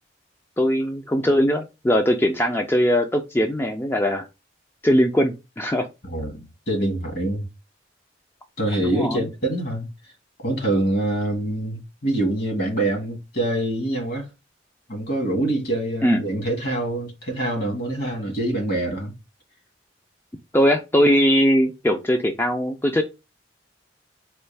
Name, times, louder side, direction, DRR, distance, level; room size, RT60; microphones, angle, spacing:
voice 1, 0.6-4.2 4.8-5.9 8.8-9.3 16.0-16.2 20.5-23.0, equal, 10° left, 0.4 m, -20 dB
voice 2, 6.1-7.5 8.6-9.9 10.4-14.3 14.9-19.1, right 1 dB, 55° left, 1.7 m, -25 dB
4.3 x 2.3 x 3.3 m
head